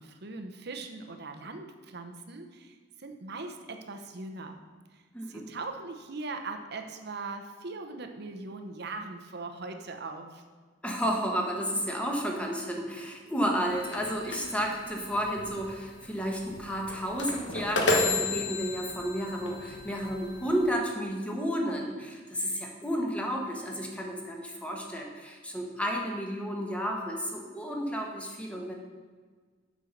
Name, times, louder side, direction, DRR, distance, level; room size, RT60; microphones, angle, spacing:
voice 1, 0.0-4.6 4.9-10.4, right 3 dB, 60° right, 5 dB, 0.9 m, -40 dB
voice 2, 5.1-5.5 10.8-28.7, equal, 5° left, 0 dB, 1.2 m, -32 dB
sound 1, 13.7-20.7, left 3 dB, 65° left, 1.2 m, -33 dB
7.8 x 5.5 x 6.6 m, 1.5 s
head